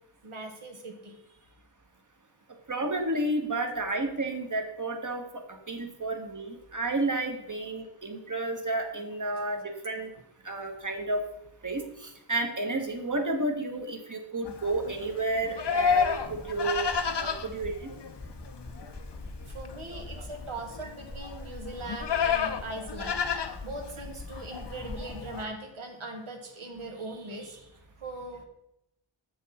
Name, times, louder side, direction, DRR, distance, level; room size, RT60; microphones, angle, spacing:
voice 1, 0.2-1.1 19.5-23.3 23.6-27.7 28.0-28.4, right 2 dB, 75° right, 2 dB, 1.5 m, -40 dB
voice 2, 2.7-5.2 5.7-10.1 10.4-11.2 11.6-17.7, right 2 dB, 40° right, 4 dB, 1.3 m, -31 dB
Livestock farm animals working animals, 14.5-25.4, left 6 dB, 55° left, 0.7 m, -32 dB
sound 1, 15.6-25.1, left 2 dB, 10° left, 0.7 m, -45 dB
7.6 x 6.3 x 4.2 m, 0.84 s
wide cardioid pair, 55°, 49 cm